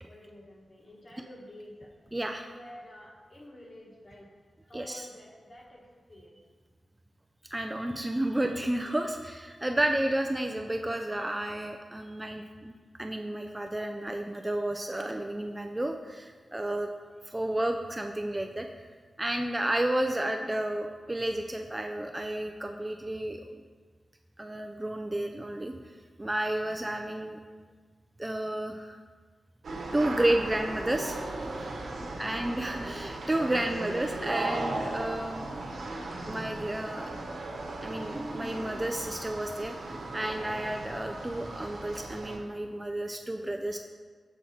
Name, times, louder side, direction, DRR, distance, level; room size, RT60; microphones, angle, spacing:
voice 1, 0.1-1.9 2.4-4.3 4.7-6.4 31.8-32.5, left 1 dB, 40° left, -2 dB, 1.3 m, -50 dB
voice 2, 2.1-2.4 4.7-5.1 7.5-12.7 13.0-16.9 17.3-18.7 19.2-23.4 24.4-25.7 26.2-27.4 28.2-29.0 29.9-31.2 31.5-31.7 32.2-35.5 36.3-37.1 37.8-43.8, right 1 dB, 15° right, 4 dB, 0.3 m, -31 dB
sound 1, 29.6-42.4, right 2 dB, 85° right, 0.9 m, -37 dB
7.0 x 4.7 x 4.2 m, 1.5 s
wide cardioid pair, 145°, 0 cm